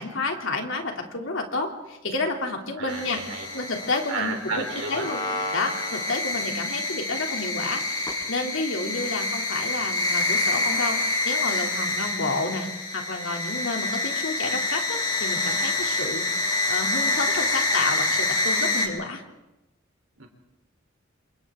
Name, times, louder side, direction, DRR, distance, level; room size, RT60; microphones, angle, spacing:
voice 1, 0.0-3.2 3.5-5.2 5.5-19.2, left 3 dB, 75° left, 2 dB, 3.0 m, -30 dB
voice 2, 2.8-3.5 4.1-5.1 20.2-20.3, right 4 dB, 80° right, 3 dB, 3.9 m, -32 dB
sound 1, 2.9-18.9, left 2 dB, 25° left, 5.5 m, -27 dB
29.0 x 27.0 x 3.8 m, 0.97 s
head